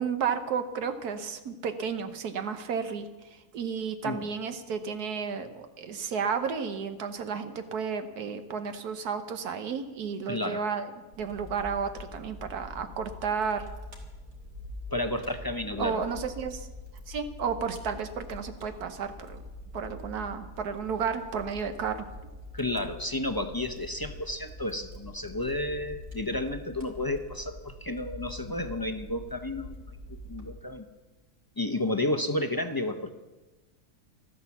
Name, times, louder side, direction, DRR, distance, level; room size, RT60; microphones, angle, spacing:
voice 1, 0.0-3.0 3.3-10.9 11.2-13.7 15.8-16.7 17.1-19.4 19.7-22.0, right 6 dB, 80° right, 8 dB, 1.5 m, -32 dB
voice 2, 10.3-10.6 14.9-16.0 22.5-30.9 31.6-33.1, left 1 dB, 25° left, 5 dB, 0.4 m, -32 dB
Fire, 11.1-30.4, left 1 dB, 60° right, 3.1 m, -44 dB
13.5 x 12.5 x 7.1 m, 1.1 s
omnidirectional pair, 1.6 m